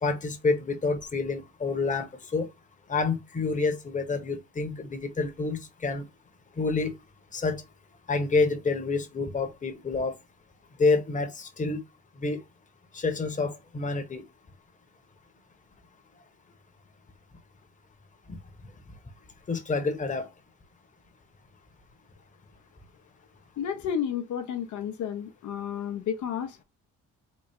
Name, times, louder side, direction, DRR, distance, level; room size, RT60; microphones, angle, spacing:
voice 1, 0.0-2.5 2.9-6.0 6.6-6.9 7.3-7.6 8.1-10.1 10.8-11.8 12.2-12.4 12.9-14.2 19.5-20.3, left 3 dB, 25° left, 0.9 m, -28 dB
voice 2, 23.6-26.6, left 8 dB, 75° left, 0.7 m, -32 dB
4.1 x 2.3 x 3.5 m
cardioid pair, 90°, 30 cm